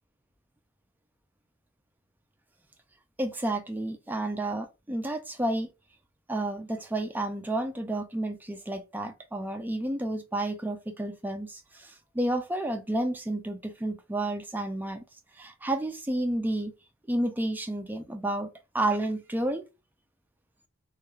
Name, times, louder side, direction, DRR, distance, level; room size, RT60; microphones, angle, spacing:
voice 1, 3.2-5.7 6.3-15.0 15.4-16.7 17.1-18.5 18.7-19.6, right 1 dB, 10° right, 0.3 m, -31 dB
2.3 x 2.2 x 3.0 m
head